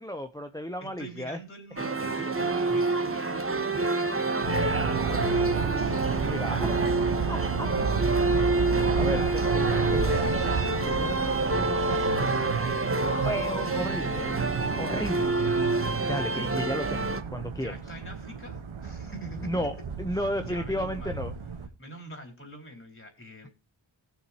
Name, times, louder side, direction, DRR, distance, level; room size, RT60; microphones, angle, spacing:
voice 1, 0.0-1.4 6.3-6.7 7.3-7.7 8.3-10.3 10.9-14.4 14.8-15.4 16.1-17.7 19.4-21.3, equal, 10° left, 7 dB, 0.8 m, -34 dB
voice 2, 0.8-5.3 5.7-6.2 8.7-10.4 13.0-13.7 17.5-19.6 20.1-21.2 21.8-23.5, equal, 25° left, 4 dB, 4.3 m, -45 dB
sound 1, 1.8-17.2, right 3 dB, 30° right, 1.4 m, -27 dB
sound 2, 4.4-21.7, right 6 dB, 85° right, 1.5 m, -32 dB
19.0 x 7.3 x 2.9 m, 0.29 s
wide cardioid pair, 105°, 47 cm